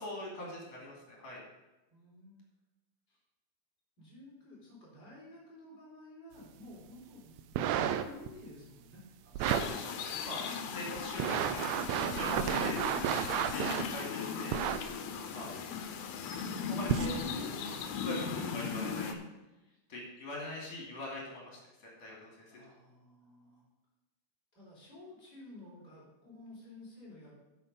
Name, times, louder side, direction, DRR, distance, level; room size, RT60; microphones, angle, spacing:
voice 1, 0.0-1.4 9.4-13.1 13.4-14.6 15.3-15.5 16.4-17.2 18.0-19.1 19.9-22.6, left 1 dB, 60° left, -3 dB, 3.8 m, -43 dB
voice 2, 1.9-2.4 3.1-3.2 4.0-9.7 15.3-15.6 22.5-23.6 24.5-27.3, left 2 dB, 35° left, -6 dB, 4.3 m, -53 dB
sound 1, 7.4-8.3 9.3-9.7 10.3-10.4 11.0-13.9 14.5-14.8 15.8-15.9 16.8-17.2 17.8-17.9, right 10 dB, 80° right, 1.7 m, -32 dB
sound 2, 9.5-19.1, left 6 dB, 90° left, 2.2 m, -37 dB
8.7 x 6.9 x 5.4 m, 1.0 s
omnidirectional pair, 3.3 m